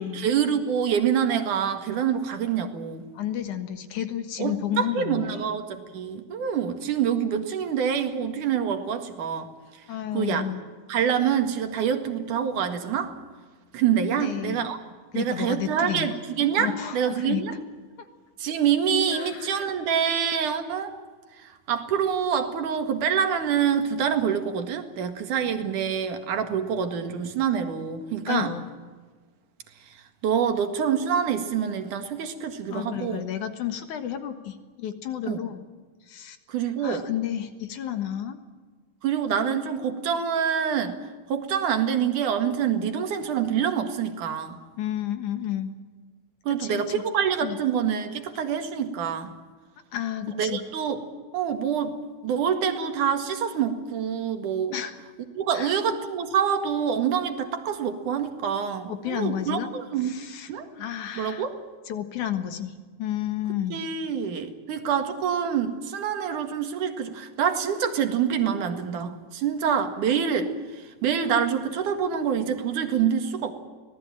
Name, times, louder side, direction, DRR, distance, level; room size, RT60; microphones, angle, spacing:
voice 1, 0.0-3.1 4.4-9.5 10.1-10.4 10.9-13.1 13.7-14.8 15.1-17.5 18.4-20.9 21.4-28.5 30.2-33.3 35.3-35.4 36.5-37.0 39.0-41.0 41.3-44.6 46.5-49.3 50.3-51.0 51.3-54.8 55.4-60.2 60.5-60.7 61.2-61.6 63.7-73.5, right 8 dB, 60° right, 6 dB, 3.0 m, -26 dB
voice 2, 3.1-5.4 9.9-10.6 14.2-14.7 15.1-16.2 16.5-17.4 19.1-19.6 28.3-28.7 32.7-35.6 36.1-36.4 36.8-38.4 44.8-45.7 46.6-47.0 47.4-47.6 49.9-50.6 54.7-55.0 55.5-55.8 58.9-59.7 60.0-61.4 61.9-63.8, left 11 dB, 60° left, 8 dB, 2.6 m, -31 dB
25.0 x 18.0 x 9.0 m, 1.4 s
omnidirectional pair, 4.5 m